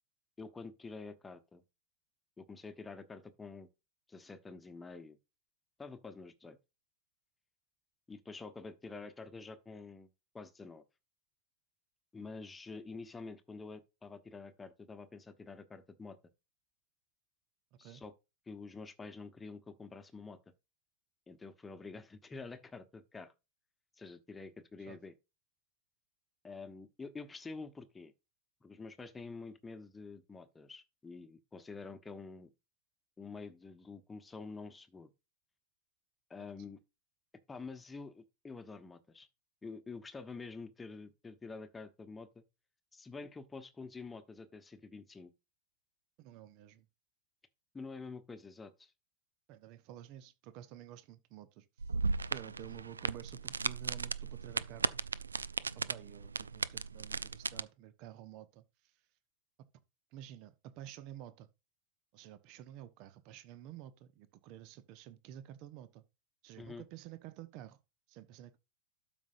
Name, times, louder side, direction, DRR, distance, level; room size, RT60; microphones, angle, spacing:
voice 1, 0.4-1.6 2.4-3.7 4.1-5.2 5.8-6.6 8.1-10.1 10.3-10.8 12.1-16.2 17.8-18.1 18.5-20.4 21.3-23.3 24.0-25.1 26.4-28.1 28.6-32.5 33.2-35.1 36.3-36.8 37.5-39.3 39.6-42.4 42.9-45.3 47.7-48.9 66.6-66.9, left 4 dB, 10° left, 1.2 m, -48 dB
voice 2, 46.2-46.9 49.5-51.6 52.3-55.0 55.7-58.6 60.1-61.5 62.1-66.0 66.4-67.8 68.1-68.6, right 12 dB, 45° right, 1.0 m, -51 dB
sound 1, 51.8-57.6, right 4 dB, 75° right, 0.3 m, -36 dB
12.5 x 5.3 x 2.5 m
figure-of-eight pair, 90°, 0 cm